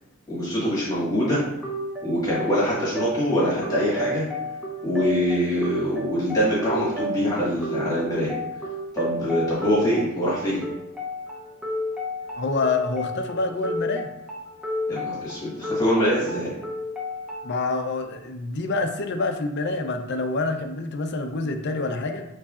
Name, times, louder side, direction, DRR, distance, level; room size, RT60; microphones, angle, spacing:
voice 1, 0.3-1.4 2.0-4.2 4.8-8.3 8.9-10.6 14.9-16.5, equal, 15° left, -8 dB, 1.5 m, -24 dB
sound 1, 1.6-17.6, left 1 dB, 5° right, 0.8 m, -32 dB
voice 2, 12.4-14.1 17.4-22.3, left 3 dB, 55° left, 5 dB, 0.5 m, -27 dB
6.7 x 3.2 x 2.4 m, 0.90 s
head